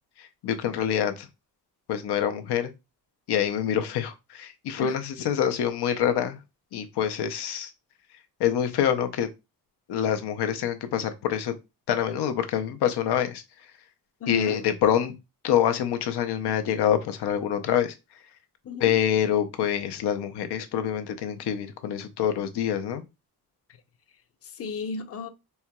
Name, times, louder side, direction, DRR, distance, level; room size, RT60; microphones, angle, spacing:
voice 1, 0.2-1.3 1.9-2.7 3.3-6.4 6.7-7.7 8.4-9.3 9.9-11.5 11.9-13.4 14.3-15.1 15.4-17.9 18.8-23.0, left 9 dB, 90° left, 0.6 m, -26 dB
voice 2, 14.2-14.7 18.6-18.9 24.4-25.3, left 3 dB, 40° left, 0.5 m, -34 dB
4.4 x 2.8 x 2.2 m
cardioid pair, 75°, 39 cm